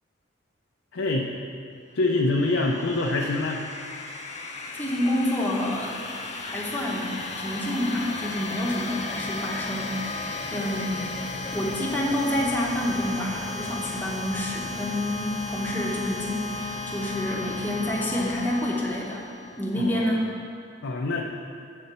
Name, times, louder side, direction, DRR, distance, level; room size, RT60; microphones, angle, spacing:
voice 1, 0.9-1.3 1.9-3.6 19.8-20.0 20.8-21.2, left 2 dB, 90° left, -1 dB, 0.6 m, -25 dB
sound 1, 2.1-19.8, left 3 dB, 30° left, 0.7 m, -35 dB
voice 2, 4.7-6.0 6.4-10.0 10.5-11.3 11.5-19.3 19.6-20.3, left 1 dB, 10° left, -4 dB, 1.0 m, -28 dB
7.6 x 4.2 x 6.7 m, 2.3 s
head